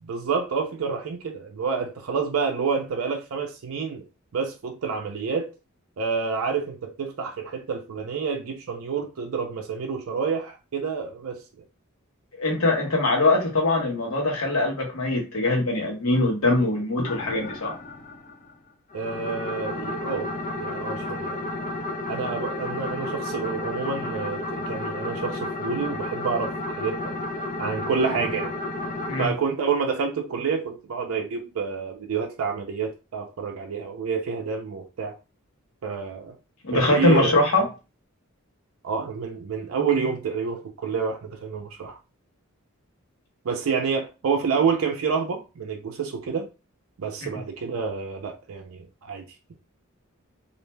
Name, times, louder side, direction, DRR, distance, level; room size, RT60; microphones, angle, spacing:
voice 1, 0.0-4.0 4.3-5.5 6.0-11.4 18.9-20.3 20.6-21.5 22.1-27.1 27.6-28.5 29.2-35.1 35.8-36.3 36.7-37.3 38.8-42.0 43.4-46.5 47.0-49.2, right 5 dB, 70° right, 0.4 m, -28 dB
voice 2, 12.4-17.7 29.1-29.3 36.6-37.7, left 2 dB, 85° left, 1.0 m, -22 dB
sound 1, 17.0-18.5 18.9-29.3, left 2 dB, 40° left, 0.5 m, -32 dB
2.5 x 2.1 x 3.1 m
head